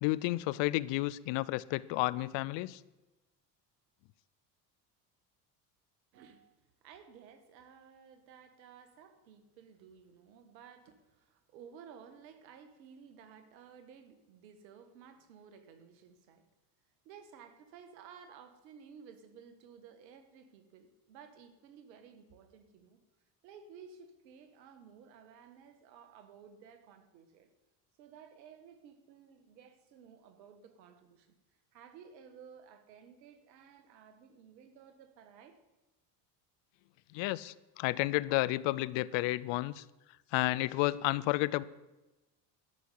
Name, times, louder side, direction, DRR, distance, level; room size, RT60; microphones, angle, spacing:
voice 1, 0.0-2.8 37.1-39.8 40.3-41.6, left 19 dB, 60° left, 20 dB, 0.6 m, -31 dB
voice 2, 6.1-16.4 17.0-23.0 23.4-27.5 28.0-31.3 31.7-35.6 37.4-37.6, right 7 dB, 85° right, 9 dB, 1.6 m, -55 dB
12.0 x 6.4 x 8.4 m, 1.0 s
hypercardioid pair, 85°, 50 cm